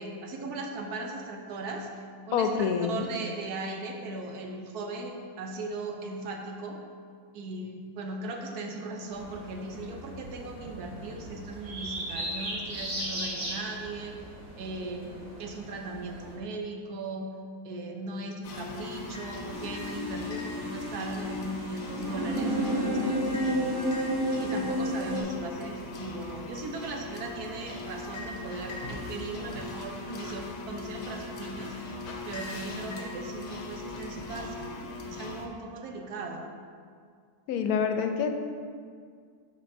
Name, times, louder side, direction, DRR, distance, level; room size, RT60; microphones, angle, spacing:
voice 1, 0.0-1.9 2.3-6.8 7.3-14.2 14.6-17.3 17.6-23.8 24.4-36.4, right 2 dB, 85° right, 3 dB, 1.3 m, -38 dB
voice 2, 2.3-3.1 37.5-38.3, left 6 dB, 80° left, 6 dB, 1.1 m, -26 dB
sound 1, 9.1-16.4, right 1 dB, 70° right, 1.6 m, -38 dB
sound 2, 18.4-35.5, left 2 dB, 60° left, 1.0 m, -39 dB
sound 3, 19.5-25.2, equal, 25° right, 0.6 m, -31 dB
11.5 x 4.3 x 2.6 m, 2.1 s
omnidirectional pair, 1.6 m